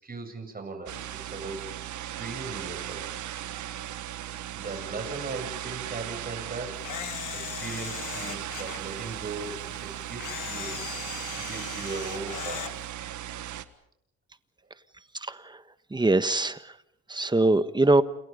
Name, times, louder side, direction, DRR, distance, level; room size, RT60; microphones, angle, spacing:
voice 1, 0.0-1.6 2.1-3.0 4.5-6.9 7.3-10.8 11.4-12.7, right 3 dB, 30° right, 5 dB, 7.8 m, -38 dB
sound 1, 0.9-13.6, right 12 dB, 75° right, 1.6 m, -37 dB
Camera, 6.8-8.8 10.2-12.7, left 11 dB, 80° left, 1.8 m, -38 dB
voice 2, 15.2-15.6 15.9-16.6 17.1-18.0, right 2 dB, 15° right, 12 dB, 1.4 m, -22 dB
29.0 x 29.0 x 5.3 m, 0.78 s
cardioid pair, 90°, 30 cm